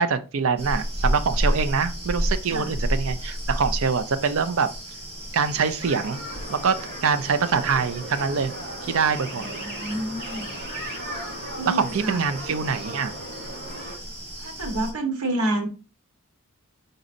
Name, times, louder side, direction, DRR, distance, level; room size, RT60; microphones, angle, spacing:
voice 1, 0.0-4.7 5.3-6.2 6.5-6.8 7.0-8.5 8.8-9.6 11.7-13.2, right 5 dB, 65° right, 0.5 m, -24 dB
sound 1, 0.6-14.9, equal, 30° right, 1.3 m, -32 dB
sound 2, 5.8-13.9, right 1 dB, 45° right, 2.3 m, -37 dB
voice 2, 9.3-10.6 11.6-12.2 14.4-15.7, right 1 dB, 85° right, 1.2 m, -29 dB
5.1 x 3.9 x 2.5 m
head